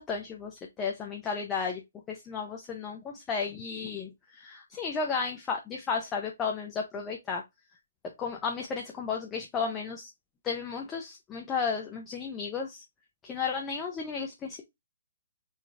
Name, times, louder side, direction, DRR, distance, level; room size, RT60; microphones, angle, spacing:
voice 1, 0.0-1.8 2.1-7.4 8.2-10.1 10.4-12.8 13.2-14.6, left 5 dB, 15° left, 0.6 m, -33 dB
4.0 x 2.3 x 3.3 m
figure-of-eight pair, 135°, 0 cm